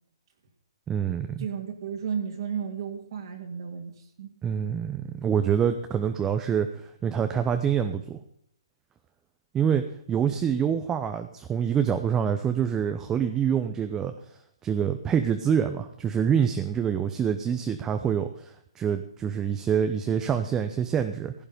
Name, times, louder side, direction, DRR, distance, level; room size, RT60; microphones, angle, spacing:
voice 1, 0.9-1.5 4.4-8.2 9.5-14.1 14.6-21.3, right 8 dB, 15° right, 7 dB, 0.7 m, -26 dB
voice 2, 1.4-4.3, right 7 dB, 55° right, 2 dB, 2.2 m, -33 dB
15.5 x 8.9 x 5.1 m, 0.73 s
hypercardioid pair, 140°, 3 cm